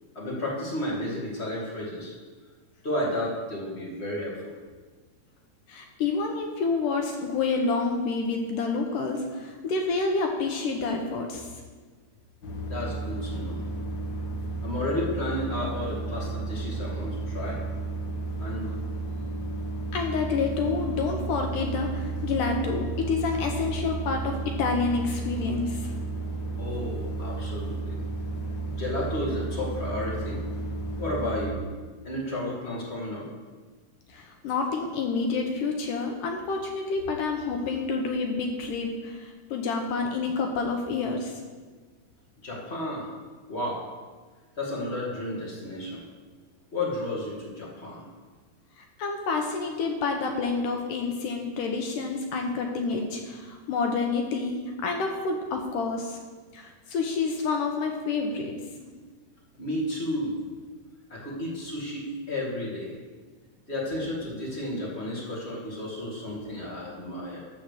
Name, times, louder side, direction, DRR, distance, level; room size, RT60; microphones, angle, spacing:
voice 1, 0.1-2.1 2.8-4.5 12.7-13.6 14.6-17.6 18.4-18.7 26.6-28.0 28.8-30.4 31.0-31.6 32.0-33.2 42.4-43.1 43.5-43.8 44.5-46.1 46.7-48.0 59.6-60.4 61.1-63.0 63.7-67.4, left 1 dB, 25° left, -3 dB, 1.6 m, -32 dB
voice 2, 5.7-11.5 19.9-25.9 34.1-41.4 48.8-56.2 56.5-58.5, left 4 dB, 75° left, 3 dB, 2.3 m, -28 dB
sound 1, 12.4-31.5, right 3 dB, 50° left, 1.6 m, -33 dB
13.5 x 5.2 x 6.5 m, 1.4 s
omnidirectional pair, 4.0 m